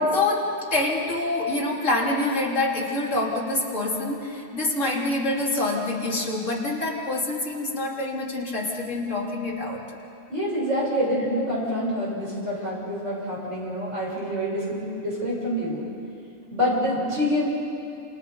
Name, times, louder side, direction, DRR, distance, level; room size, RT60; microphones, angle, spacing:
voice 1, 0.0-9.8, left 2 dB, 50° left, -4 dB, 3.6 m, -26 dB
voice 2, 10.3-15.8 16.5-17.4, equal, 50° right, -5 dB, 7.3 m, -26 dB
28.5 x 28.0 x 5.6 m, 2.6 s
omnidirectional pair, 1.6 m